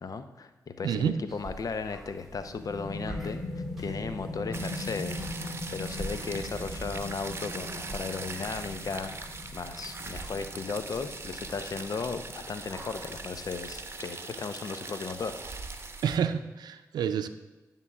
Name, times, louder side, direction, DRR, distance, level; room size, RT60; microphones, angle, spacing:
voice 1, 0.0-3.4 3.8-15.4, left 4 dB, 60° left, 9 dB, 0.8 m, -36 dB
voice 2, 0.8-1.2 16.0-17.3, right 8 dB, 85° right, 10 dB, 0.5 m, -28 dB
sound 1, 1.3-14.0, right 1 dB, 5° right, 2.4 m, -47 dB
sound 2, 2.4-13.7, left 2 dB, 90° left, 1.3 m, -41 dB
sound 3, 4.5-16.2, right 3 dB, 35° right, 1.0 m, -41 dB
10.5 x 3.8 x 7.3 m, 1.2 s
supercardioid pair, 45°, 7 cm